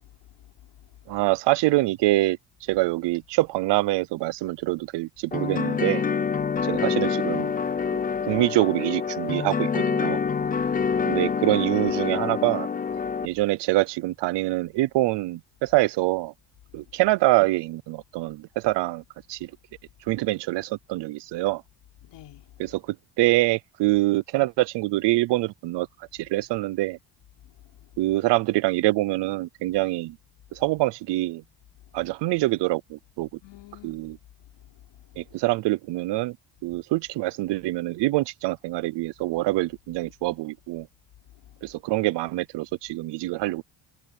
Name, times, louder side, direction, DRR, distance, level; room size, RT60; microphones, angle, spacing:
voice 1, 1.1-2.4 2.7-6.0 6.7-7.5 7.9-8.0 8.3-10.2 11.1-12.7 13.2-16.3 16.7-19.0 19.3-19.5 20.1-21.6 22.6-25.9 26.1-27.0 28.0-30.2 30.5-31.4 31.9-33.3 33.8-34.2 35.2-36.4 36.6-40.9 41.6-43.6, right 19 dB, 75° right, 0.7 m, -25 dB
sound 1, 5.3-13.3, left 6 dB, 20° left, 0.5 m, -26 dB
voice 2, 10.1-11.1 12.0-12.1 22.0-22.5 33.4-34.1 34.7-35.0, left 15 dB, 75° left, 4.4 m, -48 dB
cardioid pair, 150°, 42 cm